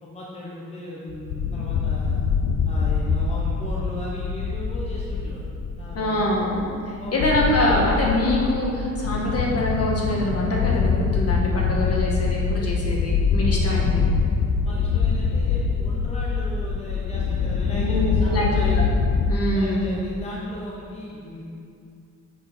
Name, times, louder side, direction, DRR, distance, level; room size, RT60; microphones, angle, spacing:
voice 1, 0.0-2.2 2.6-5.5 5.8-6.2 7.0-7.3 14.6-18.9 19.5-21.4, left 1 dB, 20° left, -5 dB, 0.9 m, -37 dB
sound 1, 1.1-19.3, left 5 dB, 80° left, 0.6 m, -24 dB
voice 2, 5.9-14.1 17.8-18.7 19.3-19.9, left 1 dB, 45° left, -3 dB, 1.6 m, -24 dB
6.6 x 5.4 x 6.2 m, 2.4 s
wide cardioid pair, 160°, 32 cm